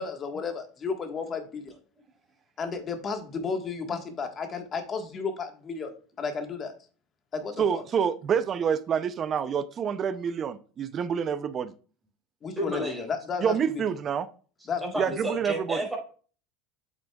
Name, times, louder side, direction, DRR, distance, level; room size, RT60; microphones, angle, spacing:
voice 1, 0.0-1.8 2.6-5.9 6.2-6.7 7.3-7.8 12.4-13.6 14.7-14.8, left 5 dB, 30° left, 5 dB, 1.5 m, -33 dB
voice 2, 7.6-11.7 13.4-14.3 15.0-15.8, right 7 dB, 35° right, 14 dB, 0.5 m, -27 dB
voice 3, 12.5-13.1 14.8-16.0, right 1 dB, 5° right, -2 dB, 4.4 m, -31 dB
8.2 x 7.8 x 2.3 m, 0.39 s
supercardioid pair, 125°, 0 cm